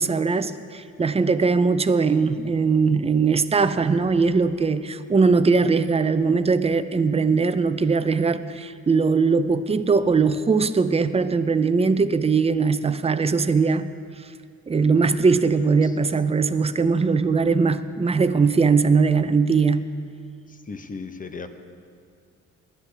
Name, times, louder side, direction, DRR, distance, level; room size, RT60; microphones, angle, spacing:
voice 1, 0.0-13.9 14.7-19.9, right 4 dB, 20° right, 11 dB, 0.5 m, -20 dB
voice 2, 20.5-21.5, left 4 dB, 25° left, 8 dB, 0.9 m, -36 dB
19.5 x 11.5 x 3.4 m, 2.3 s
cardioid pair, 90°, 30 cm